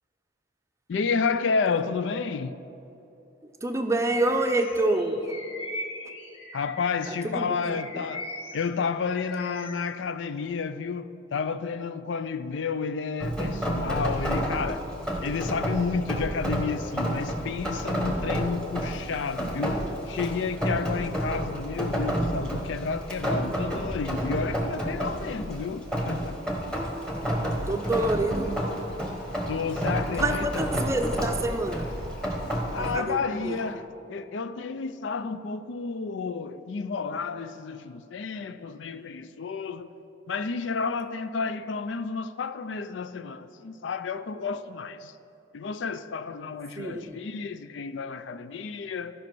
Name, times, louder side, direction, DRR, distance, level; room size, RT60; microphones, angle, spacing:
voice 1, 0.9-2.6 6.5-8.3 8.5-14.9 15.2-19.8 20.1-26.4 29.5-30.6 32.7-39.9 40.3-45.1 45.5-49.1, left 5 dB, 75° left, 0.4 m, -31 dB
voice 2, 3.6-5.2 7.1-8.1 27.7-28.5 30.2-31.9 32.8-33.6 46.8-47.2, right 2 dB, 15° right, 0.5 m, -27 dB
Bird vocalization bird call bird song, 3.9-7.2 7.7-9.9, left 1 dB, 30° left, 1.1 m, -40 dB
Rain, 13.2-33.0, equal, 5° left, 1.1 m, -30 dB
sound 1, 26.9-33.7, left 1 dB, 55° left, 1.3 m, -45 dB
13.5 x 5.2 x 6.1 m
head